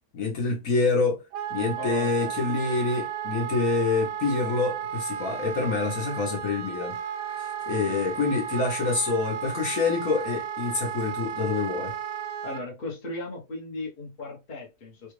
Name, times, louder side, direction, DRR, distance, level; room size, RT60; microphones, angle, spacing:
voice 1, 0.1-1.2 1.5-6.9 7.4-11.9, left 4 dB, 55° left, 1.3 m, -26 dB
Wind instrument woodwind instrument, 1.3-12.6, right 9 dB, 70° right, 0.8 m, -34 dB
voice 2, 1.8-2.3 7.7-8.2 12.4-15.1, left 2 dB, 40° left, 1.0 m, -37 dB
3.4 x 2.4 x 3.1 m
omnidirectional pair, 1.8 m